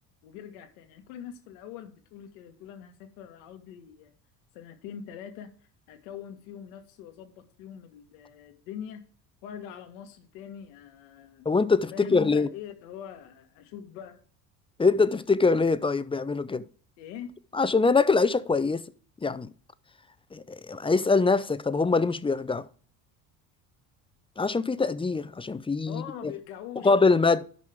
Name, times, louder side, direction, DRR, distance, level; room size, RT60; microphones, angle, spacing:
voice 1, 0.2-4.1 4.5-5.5 5.9-9.0 9.4-11.5 11.9-14.2 17.0-17.4 25.9-27.3, left 9 dB, 80° left, 1.6 m, -43 dB
voice 2, 11.5-12.5 14.8-16.6 17.5-18.8 19.2-19.5 20.3-22.7 24.4-26.3 26.8-27.4, left 4 dB, 15° left, 0.6 m, -23 dB
12.0 x 5.4 x 3.5 m
hypercardioid pair, 70°, 42 cm